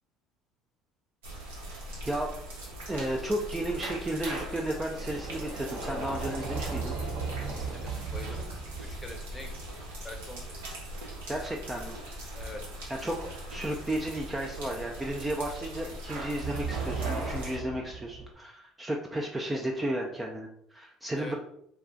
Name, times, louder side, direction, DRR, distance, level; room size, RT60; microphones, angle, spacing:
sound 1, 1.2-17.6, right 1 dB, 85° right, 0.9 m, -41 dB
voice 1, 2.9-7.0 11.3-12.0 12.9-21.3, right 1 dB, 15° right, 0 dB, 0.4 m, -33 dB
sound 2, 3.8-10.6 16.1-18.3, right 4 dB, 65° right, 0.8 m, -37 dB
voice 2, 7.5-8.5 8.8-9.5 10.0-10.6 12.3-12.6 21.1-21.4, left 2 dB, 15° left, 2 dB, 0.9 m, -44 dB
2.3 x 2.3 x 3.7 m, 0.71 s
hypercardioid pair, 70°, 0 cm